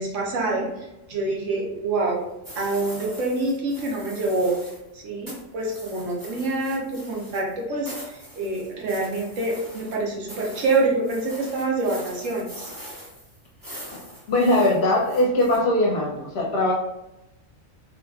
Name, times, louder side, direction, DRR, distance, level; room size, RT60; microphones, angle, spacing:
voice 1, 0.0-2.3 2.6-4.5 4.9-12.7, right 2 dB, 75° right, -2 dB, 1.1 m, -26 dB
sound 1, 2.4-4.9 5.3-15.6, equal, 20° right, 0.8 m, -42 dB
voice 2, 14.3-16.7, left 1 dB, 60° left, -1 dB, 0.7 m, -21 dB
2.7 x 2.4 x 2.2 m, 0.90 s
omnidirectional pair, 1.4 m